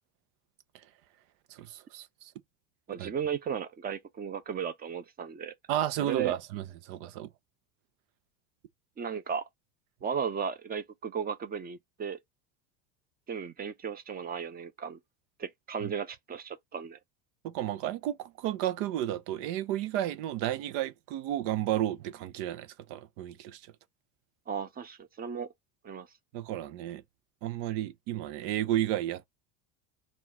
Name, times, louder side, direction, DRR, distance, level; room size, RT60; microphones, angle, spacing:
voice 1, 1.5-2.3 3.0-3.1 5.7-7.3 15.8-15.9 17.4-23.6 26.3-27.0 27.4-29.3, right 12 dB, 70° right, 0.7 m, -32 dB
voice 2, 2.9-5.5 6.0-6.4 9.0-9.5 10.0-12.2 13.3-15.0 15.4-17.0 24.5-25.5 25.8-26.1, right 7 dB, 25° right, 0.6 m, -35 dB
4.2 x 2.4 x 4.2 m
supercardioid pair, 125°, 40 cm